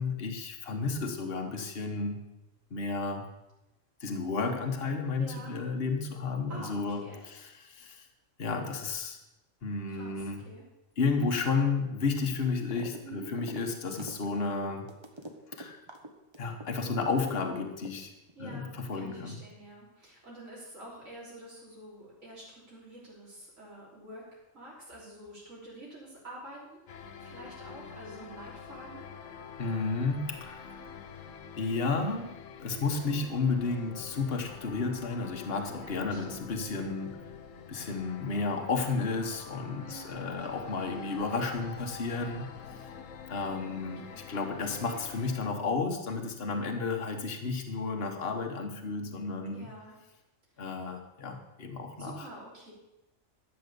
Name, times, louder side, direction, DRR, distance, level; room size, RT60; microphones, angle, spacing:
voice 1, 0.0-2.2 2.7-3.2 4.0-8.1 8.4-9.2 9.6-10.4 11.0-14.9 15.6-15.8 16.4-18.1 18.4-19.4 29.6-30.8 31.6-32.3 32.6-37.2 37.7-42.5 42.8-42.9 43.3-44.0 44.3-49.7 50.6-52.3, left 4 dB, 50° left, 3 dB, 1.5 m, -32 dB
voice 2, 5.2-5.6 6.5-7.3 9.9-10.6 13.0-13.3 18.4-29.0 33.1-33.3 35.7-36.5 39.8-40.2 43.7-44.4 46.5-46.7 49.5-49.9 50.5-50.6 52.0-52.7, right 1 dB, 80° right, -6 dB, 4.1 m, -48 dB
sound 1, 12.7-13.0 13.3-17.1 17.4-18.3, right 1 dB, 20° right, 1.2 m, -44 dB
sound 2, 26.9-45.5, left 7 dB, 75° left, 1.2 m, -46 dB
12.0 x 7.7 x 6.9 m, 0.93 s
omnidirectional pair, 1.3 m